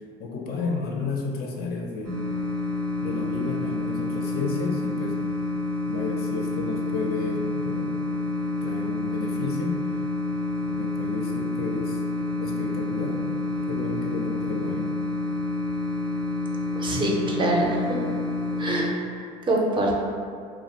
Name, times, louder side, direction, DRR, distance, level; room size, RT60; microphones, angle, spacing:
voice 1, 0.2-2.2 3.0-5.2 5.9-7.9 8.6-10.0 10.7-12.0 12.4-13.2 13.7-14.9, left 4 dB, 55° left, 1 dB, 0.4 m, -32 dB
sound 1, 2.0-18.9, left 2 dB, 90° right, 0.5 m, -28 dB
voice 2, 16.8-18.0 18.6-18.9 19.5-20.0, right 1 dB, 25° right, -1 dB, 0.4 m, -24 dB
2.4 x 2.0 x 2.8 m, 2.2 s
supercardioid pair, 85°, 19 cm